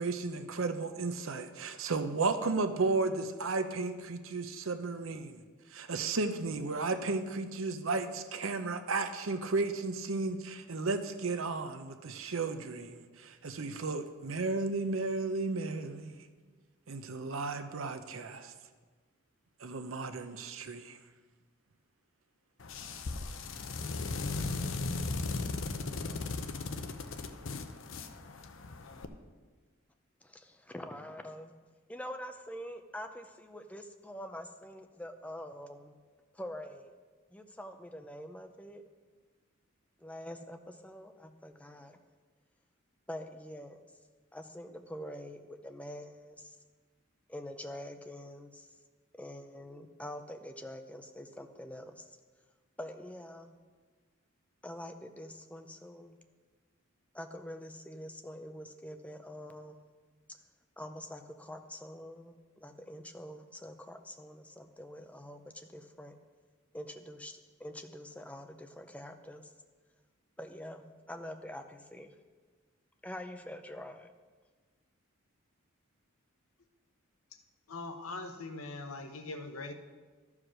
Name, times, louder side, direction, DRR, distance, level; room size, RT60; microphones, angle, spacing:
voice 1, 0.0-5.4 5.7-16.2 16.9-18.5 19.6-21.0, right 3 dB, 70° right, 9 dB, 0.7 m, -34 dB
sound 1, 22.6-29.1, left 3 dB, 65° left, 0.7 m, -37 dB
voice 2, 30.2-31.5 31.9-36.0 36.3-36.9 37.3-38.8 40.0-42.0 43.1-43.8 44.3-46.6 47.3-48.8 49.2-52.1 52.8-53.6 54.6-56.2 57.1-60.0 60.3-60.4 60.8-66.2 66.7-69.5 70.4-72.2 73.0-74.1, left 1 dB, 5° left, 6 dB, 0.5 m, -45 dB
voice 3, 77.7-79.7, left 3 dB, 85° left, 7 dB, 0.9 m, -41 dB
12.5 x 4.9 x 6.2 m, 1.4 s
head